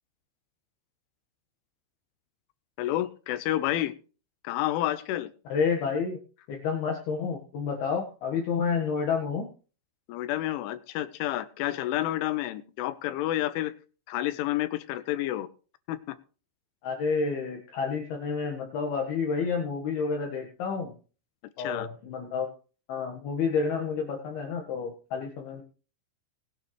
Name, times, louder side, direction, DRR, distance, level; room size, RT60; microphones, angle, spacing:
voice 1, 2.8-3.9 4.4-5.3 10.1-13.7 14.1-15.5 15.9-16.2 21.6-21.9, left 14 dB, 90° left, 13 dB, 3.4 m, -29 dB
voice 2, 5.5-6.2 6.5-9.5 16.8-20.9 21.6-22.5 22.9-25.6, left 5 dB, 65° left, 2 dB, 3.1 m, -29 dB
20.0 x 8.9 x 3.2 m, 0.37 s
omnidirectional pair, 5.4 m